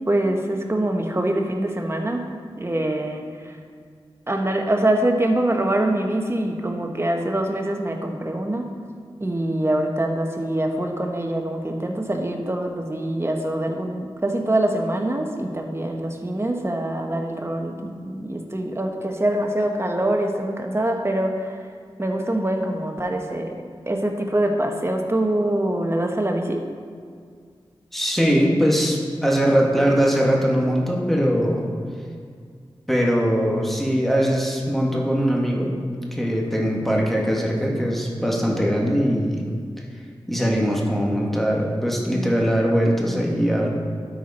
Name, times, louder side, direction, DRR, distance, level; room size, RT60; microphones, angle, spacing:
voice 1, 0.1-2.3 2.6-3.6 4.3-8.7 9.2-21.6 22.0-23.6 23.9-26.6, right 1 dB, 25° right, 3 dB, 1.2 m, -24 dB
voice 2, 27.9-31.7 32.9-35.7 36.1-39.4 40.3-43.7, equal, ahead, -2 dB, 1.8 m, -21 dB
12.5 x 4.7 x 4.3 m, 2.1 s
cardioid pair, 40°, 10 cm